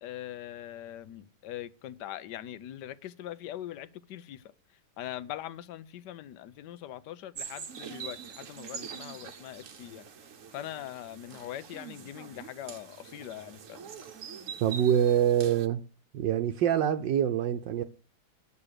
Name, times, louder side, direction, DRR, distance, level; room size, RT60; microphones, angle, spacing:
voice 1, 0.0-4.5 5.0-10.1 10.5-13.9, left 12 dB, 65° left, 1.2 m, -42 dB
sound 1, 7.3-15.7, right 7 dB, 50° right, 1.0 m, -44 dB
voice 2, 14.6-15.8 16.1-17.8, right 10 dB, 70° right, 1.3 m, -25 dB
9.8 x 7.5 x 6.5 m
omnidirectional pair, 2.2 m